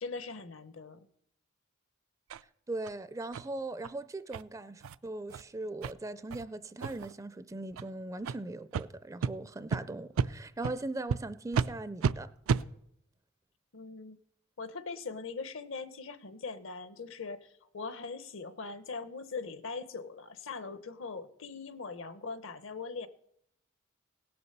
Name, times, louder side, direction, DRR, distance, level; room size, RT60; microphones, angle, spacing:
voice 1, 0.0-1.0 13.7-14.2 14.6-23.1, left 4 dB, 65° left, 0.9 m, -41 dB
sound 1, 2.3-2.4 2.8-2.9 3.3-3.5 3.8-3.9 4.3-4.4 4.8-5.0 5.3-5.4 5.8-5.9 6.3-6.4 6.8-7.1 7.7-7.8 8.2-8.4 8.7-8.8 9.2-9.3 9.7-9.8 10.2-10.3 10.6-10.8 11.1-11.2 11.5-11.7 12.0-12.1 12.5-12.6, right 6 dB, 80° right, 0.4 m, -31 dB
voice 2, 2.7-12.3, right 2 dB, 15° right, 0.4 m, -39 dB
17.5 x 6.9 x 6.7 m
head